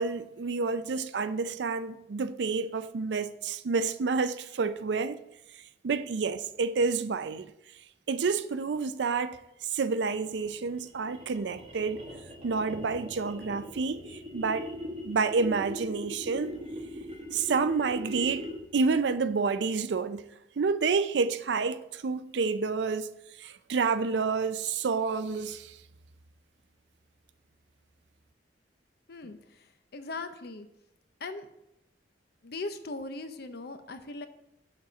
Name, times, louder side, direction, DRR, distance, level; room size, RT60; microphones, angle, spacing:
voice 1, 0.0-5.2 5.8-7.5 8.1-9.4 9.7-12.0 12.4-14.0 14.3-14.7 15.0-16.5 17.3-18.5 18.7-20.2 20.6-23.1 23.4-25.7, right 4 dB, 75° right, 0.4 m, -29 dB
sound 1, 10.1-18.8, equal, 35° right, 1.5 m, -41 dB
voice 2, 29.1-29.7 29.9-30.7 31.2-31.5 32.4-34.3, left 3 dB, 65° left, 0.7 m, -39 dB
7.2 x 4.2 x 6.2 m
head